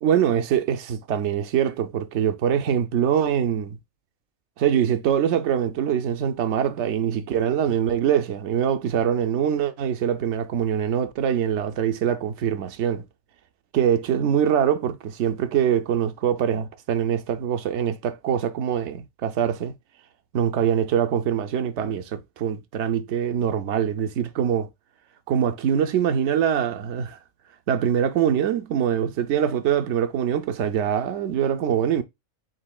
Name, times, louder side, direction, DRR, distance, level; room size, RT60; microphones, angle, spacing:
voice 1, 0.0-3.8 4.6-13.0 13.7-19.7 20.3-24.7 25.3-27.2 27.7-32.0, right 9 dB, 65° right, 0.8 m, -23 dB
7.3 x 2.8 x 2.2 m
omnidirectional pair, 1.5 m